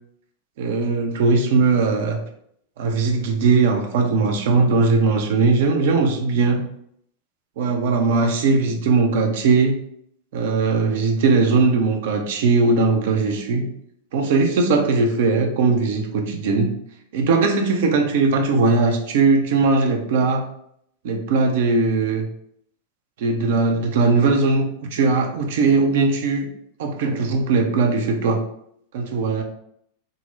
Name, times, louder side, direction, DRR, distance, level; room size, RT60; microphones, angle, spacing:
voice 1, 0.6-2.2 2.8-6.6 7.6-9.8 10.3-13.7 14.1-16.7 17.1-20.4 21.0-22.3 23.2-26.5 26.8-28.4 28.9-29.4, right 4 dB, 55° right, 3 dB, 0.5 m, -19 dB
3.8 x 2.1 x 2.7 m, 0.69 s
figure-of-eight pair, 90°, 0 cm